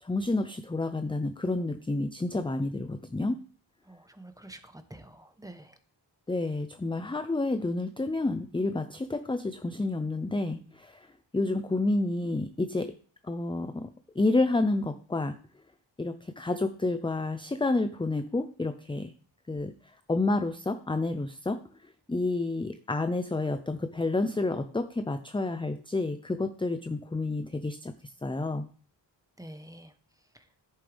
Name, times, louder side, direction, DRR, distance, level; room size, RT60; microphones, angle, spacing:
voice 1, 0.0-3.4 6.3-11.1 11.3-12.9 13.2-15.4 16.0-19.1 19.5-19.7 20.1-21.6 22.1-27.9 28.2-28.6, left 2 dB, 10° left, 9 dB, 0.5 m, -29 dB
voice 2, 3.8-5.8 29.4-30.6, right 1 dB, 10° right, 8 dB, 1.1 m, -48 dB
10.5 x 8.8 x 3.4 m, 0.42 s
wide cardioid pair, 90°, 46 cm